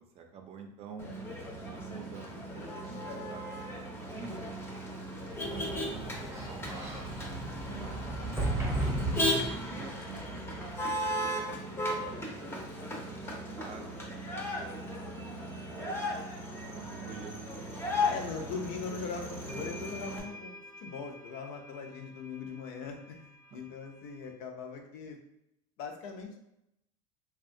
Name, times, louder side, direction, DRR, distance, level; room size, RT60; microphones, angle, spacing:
voice 1, 0.1-1.1 1.6-3.4 3.7-4.5 5.0-7.1 7.6-9.1 9.4-12.6 13.1-13.9 14.2-15.2 15.5-16.0 16.5-17.3 17.6-18.1 23.5-23.7, right 5 dB, 40° right, 3 dB, 0.5 m, -49 dB
Motor vehicle (road), 1.0-20.2, left 1 dB, 15° left, 0.6 m, -36 dB
Sliding door, 5.2-9.9, right 1 dB, 15° right, 0.8 m, -35 dB
voice 2, 8.2-8.6 18.1-25.2 25.8-26.4, left 5 dB, 70° left, 3 dB, 0.5 m, -41 dB
sound 1, 19.5-24.3, left 1 dB, 90° right, 0.5 m, -49 dB
2.7 x 2.3 x 2.5 m, 0.82 s
supercardioid pair, 110°, 16 cm